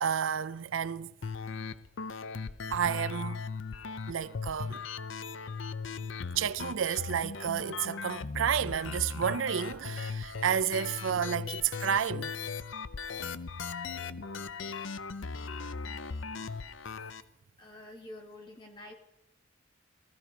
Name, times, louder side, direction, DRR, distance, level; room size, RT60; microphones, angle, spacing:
voice 1, 0.0-1.1 2.7-3.4 4.1-4.8 6.4-12.3, right 8 dB, 85° right, 0.5 m, -31 dB
sound 1, 1.2-17.2, left 5 dB, 75° left, 0.7 m, -38 dB
voice 2, 17.6-18.9, left 1 dB, 25° left, 2.3 m, -47 dB
15.5 x 14.0 x 5.1 m
head